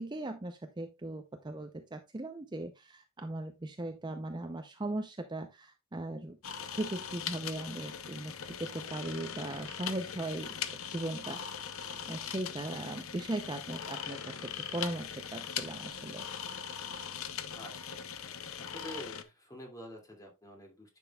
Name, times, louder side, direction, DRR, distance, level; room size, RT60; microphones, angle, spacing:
voice 1, 0.0-6.4 6.7-11.4 11.7-16.7, right 1 dB, 20° right, 7 dB, 0.5 m, -39 dB
sound 1, 6.4-19.2, left 8 dB, 70° left, 0.7 m, -41 dB
voice 2, 17.5-18.0 18.6-21.0, equal, 15° left, 1 dB, 2.3 m, -48 dB
10.0 x 6.1 x 2.3 m, 0.22 s
head